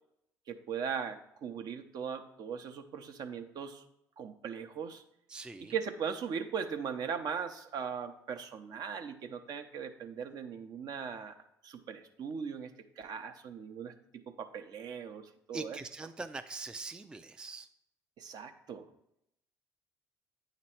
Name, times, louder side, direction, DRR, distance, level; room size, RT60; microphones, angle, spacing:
voice 1, 0.5-3.8 4.2-5.0 5.7-11.3 11.6-12.7 13.0-15.8 18.2-18.9, right 7 dB, 55° right, 7 dB, 0.7 m, -39 dB
voice 2, 5.3-5.8 15.5-17.7, right 3 dB, 10° right, 8 dB, 0.3 m, -42 dB
8.8 x 3.0 x 4.4 m, 0.78 s
hypercardioid pair, 60°, 8 cm